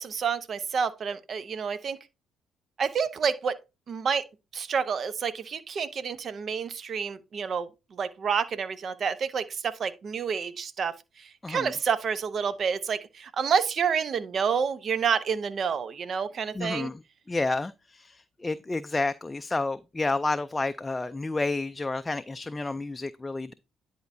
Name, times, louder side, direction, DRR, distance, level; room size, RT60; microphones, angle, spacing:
voice 1, 0.0-2.0 2.8-3.6 3.9-4.2 4.5-16.9, right 6 dB, 55° right, 0.7 m, -29 dB
voice 2, 16.6-17.0 17.3-23.5, left 3 dB, 20° left, 0.4 m, -30 dB
10.5 x 4.5 x 2.6 m
hypercardioid pair, 55°, 0 cm